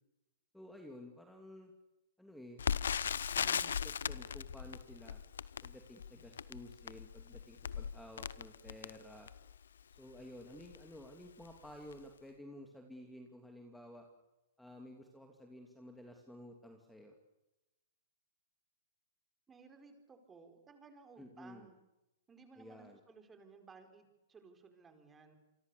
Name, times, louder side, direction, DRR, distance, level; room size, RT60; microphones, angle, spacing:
voice 1, 0.5-1.7 2.2-2.6 3.4-5.2 5.6-9.3 10.0-14.1 14.6-17.1 21.2-21.7 22.6-23.0, left 1 dB, 5° left, 3 dB, 2.8 m, -53 dB
Crackle, 2.6-9.6 10.2-10.3 10.6-10.8 11.4-11.7 11.9-12.0, left 7 dB, 80° left, 0.9 m, -38 dB
voice 2, 19.5-21.8 22.3-25.4, right 4 dB, 15° right, 7 dB, 4.4 m, -58 dB
28.0 x 24.5 x 7.0 m, 0.95 s
hypercardioid pair, 125°, 0 cm